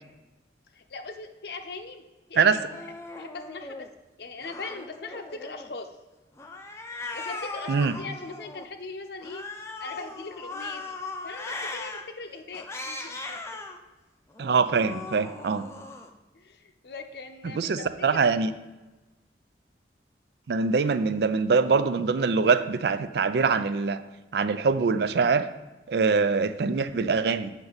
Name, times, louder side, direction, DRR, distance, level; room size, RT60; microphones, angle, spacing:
voice 1, 0.7-2.7 3.2-3.9 4.2-5.9 7.1-9.4 9.8-11.0 11.2-13.6 16.3-17.8 18.1-18.3, left 3 dB, 65° left, 6 dB, 0.7 m, -40 dB
Cat, 2.4-3.9 4.4-5.7 6.4-8.6 9.2-12.0 12.5-13.8 14.3-16.1, left 3 dB, 15° left, 0.5 m, -39 dB
voice 2, 14.4-15.7 17.4-18.5 20.5-24.0 24.3-25.5 25.9-27.5, right 5 dB, 65° right, 12 dB, 0.4 m, -23 dB
7.9 x 5.8 x 4.0 m, 1.1 s
head